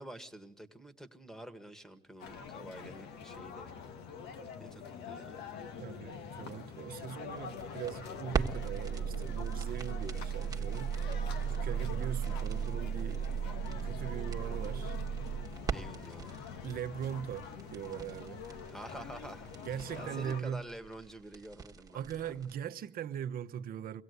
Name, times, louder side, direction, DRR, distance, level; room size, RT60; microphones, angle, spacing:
voice 1, 0.0-3.7 4.6-5.5 15.7-16.5 18.7-22.3, right 1 dB, 5° left, 1.7 m, -48 dB
sound 1, 2.2-20.4, left 6 dB, 85° left, 1.6 m, -45 dB
voice 2, 5.8-11.1 11.5-15.0 16.6-18.4 19.7-20.6 21.9-24.0, right 9 dB, 60° right, 1.0 m, -41 dB
sound 2, 7.4-22.5, right 7 dB, 20° right, 1.4 m, -37 dB
24.0 x 17.0 x 8.1 m
cardioid pair, 110°, 17 cm